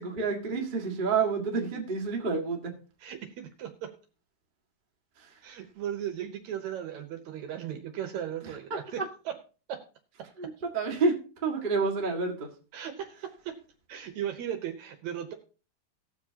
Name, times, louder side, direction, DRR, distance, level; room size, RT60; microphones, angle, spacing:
voice 1, 0.0-2.6 10.4-11.2 11.4-12.5, right 4 dB, 35° right, 0.7 m, -28 dB
voice 2, 3.0-3.9 5.4-9.4 9.7-9.8 10.2-10.5 12.7-13.6 13.9-15.3, right 10 dB, 70° right, 1.9 m, -37 dB
18.5 x 7.3 x 2.8 m
omnidirectional pair, 4.0 m